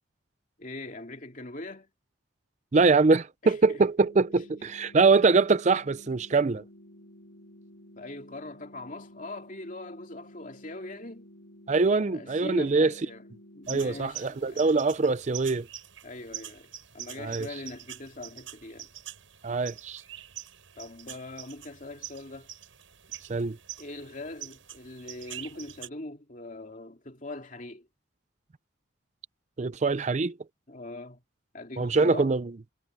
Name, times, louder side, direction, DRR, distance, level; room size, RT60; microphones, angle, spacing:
voice 1, 0.6-1.9 3.4-3.8 8.0-11.3 11.9-13.2 13.5-14.8 16.0-18.9 20.8-22.5 23.1-23.2 23.8-27.9 30.7-31.2 31.5-32.3, left 2 dB, 40° left, 2.7 m, -41 dB
voice 2, 2.7-6.6 11.7-12.9 13.7-15.7 17.2-17.5 19.4-20.0 23.3-23.6 29.6-30.3 31.8-32.4, right 4 dB, 35° right, 0.4 m, -23 dB
sound 1, 4.0-14.0, equal, 75° left, 7.9 m, -52 dB
sound 2, 13.7-25.9, right 12 dB, 80° right, 6.4 m, -45 dB
head